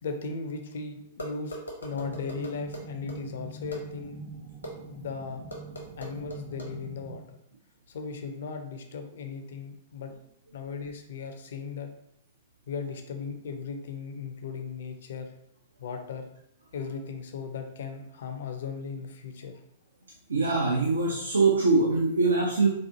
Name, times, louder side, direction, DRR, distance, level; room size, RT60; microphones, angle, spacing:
voice 1, 0.0-4.2 4.8-5.4 6.0-7.4 7.9-10.1 10.5-11.9 12.7-15.3 15.8-16.3 16.7-19.5, left 5 dB, 55° left, 6 dB, 0.5 m, -37 dB
sound 1, 1.2-3.2 3.7-3.8 4.6-4.7 5.5-6.7, equal, 75° left, 0.8 m, -39 dB
sound 2, 1.9-7.2, right 5 dB, 20° right, 0.5 m, -44 dB
voice 2, 20.3-22.7, right 3 dB, 70° right, -2 dB, 0.4 m, -23 dB
4.1 x 2.5 x 2.6 m, 0.74 s
figure-of-eight pair, 105°, 0 cm